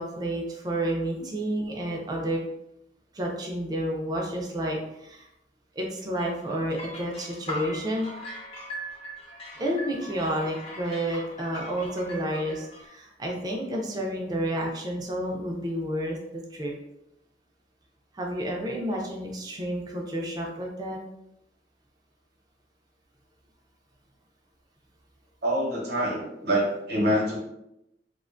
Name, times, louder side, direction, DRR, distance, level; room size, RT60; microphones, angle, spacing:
voice 1, 0.0-2.4 3.1-5.3 5.7-8.1 9.6-16.7 18.1-21.0, right 1 dB, 20° right, -1 dB, 0.4 m, -30 dB
sound 1, 6.2-12.9, equal, 35° left, 0.5 m, -40 dB
voice 2, 25.4-27.4, equal, 60° right, -2 dB, 0.7 m, -25 dB
2.4 x 2.2 x 2.5 m, 0.84 s
head